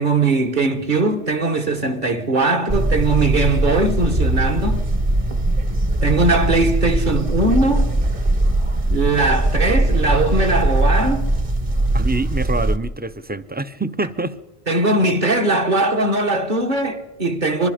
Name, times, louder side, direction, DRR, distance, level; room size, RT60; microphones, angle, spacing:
voice 1, 0.0-4.8 6.0-7.9 8.9-11.2 14.7-17.7, right 2 dB, 50° right, 1.6 m, -20 dB
sound 1, 2.7-12.8, right 1 dB, 35° right, 1.2 m, -20 dB
Bowed string instrument, 4.1-8.3, right 1 dB, 75° right, 2.7 m, -33 dB
voice 2, 11.9-14.4, right 3 dB, 15° right, 0.4 m, -26 dB
25.0 x 22.0 x 5.0 m
omnidirectional pair, 1.1 m